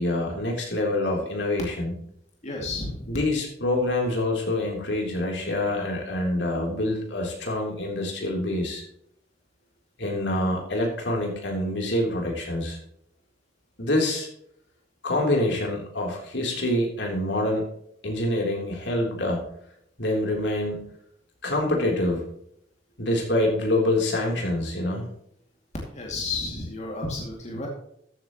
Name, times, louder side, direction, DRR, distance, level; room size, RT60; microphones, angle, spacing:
voice 1, 0.0-1.9 3.1-8.8 10.0-12.8 13.8-14.3 15.0-17.7 18.0-19.4 20.0-20.9 21.4-22.2 23.0-25.1, left 1 dB, 70° left, 0 dB, 3.5 m, -26 dB
voice 2, 2.4-3.1 25.8-27.7, left 3 dB, 40° left, -1 dB, 2.5 m, -32 dB
14.0 x 9.4 x 3.1 m, 0.71 s
head